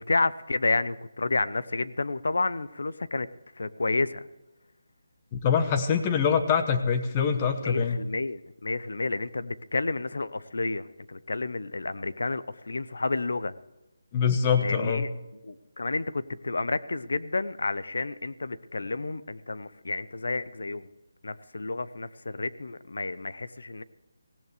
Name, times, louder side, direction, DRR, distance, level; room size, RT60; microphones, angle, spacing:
voice 1, 0.0-3.3 3.6-4.2 7.6-13.5 14.6-15.1 15.4-20.9 21.2-23.8, left 3 dB, 80° left, 15 dB, 0.8 m, -30 dB
voice 2, 5.3-8.0 14.1-15.0, left 6 dB, 15° left, 8 dB, 1.0 m, -24 dB
17.5 x 17.5 x 3.3 m, 0.98 s
hypercardioid pair, 175°, 0 cm